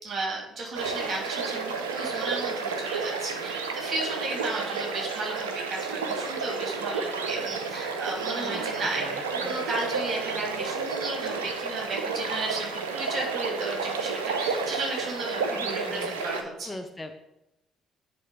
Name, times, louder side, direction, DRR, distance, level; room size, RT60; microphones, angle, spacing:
voice 1, 0.0-16.8, right 2 dB, 40° right, -1 dB, 2.7 m, -34 dB
sound 1, 0.7-16.4, right 4 dB, 80° right, 0.5 m, -31 dB
voice 2, 9.0-9.6 15.5-17.1, left 1 dB, 15° left, 6 dB, 0.6 m, -41 dB
9.3 x 3.5 x 5.2 m, 0.90 s
figure-of-eight pair, 45°, 0 cm